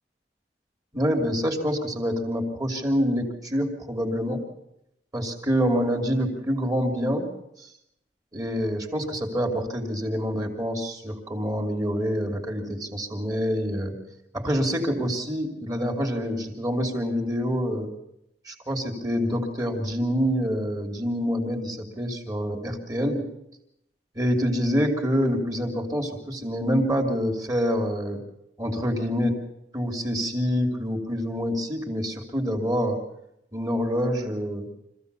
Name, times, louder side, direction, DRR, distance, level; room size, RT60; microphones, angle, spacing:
voice 1, 0.9-4.4 5.1-7.3 8.3-14.0 14.3-17.9 18.5-23.3 24.1-28.2 28.6-29.4 29.7-33.0 33.5-34.7, equal, 20° right, 3 dB, 3.2 m, -26 dB
25.0 x 15.5 x 6.9 m, 0.84 s
head